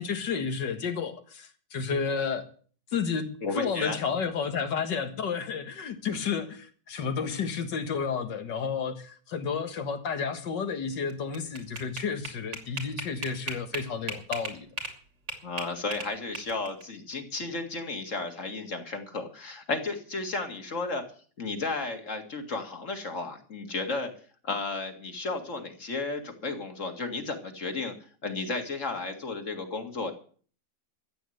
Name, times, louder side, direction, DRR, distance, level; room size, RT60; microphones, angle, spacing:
voice 1, 0.0-2.4 2.9-14.7, left 6 dB, 80° left, 8 dB, 2.2 m, -31 dB
voice 2, 3.4-4.0 15.4-21.0 21.4-24.1 24.4-27.9 28.2-30.1, left 3 dB, 45° left, 5 dB, 2.4 m, -33 dB
sound 1, 11.1-15.0 15.3-16.8, right 3 dB, 80° right, 3.5 m, -36 dB
14.0 x 8.6 x 7.9 m, 0.44 s
omnidirectional pair, 1.9 m